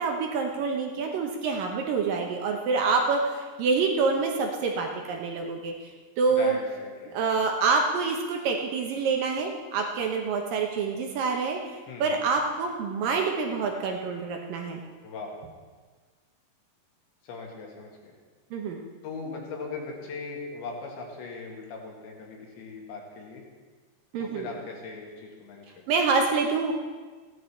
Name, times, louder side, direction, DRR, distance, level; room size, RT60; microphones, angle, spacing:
voice 1, 0.0-5.9 6.2-6.6 7.1-14.8 18.5-18.8 24.1-24.5 25.9-26.7, right 4 dB, 75° right, 2 dB, 2.0 m, -27 dB
voice 2, 6.3-7.2 11.9-12.3 15.0-15.4 17.2-18.1 19.0-23.4 24.2-25.6, left 4 dB, 80° left, 0 dB, 4.2 m, -39 dB
16.5 x 11.0 x 4.4 m, 1.4 s
omnidirectional pair, 5.1 m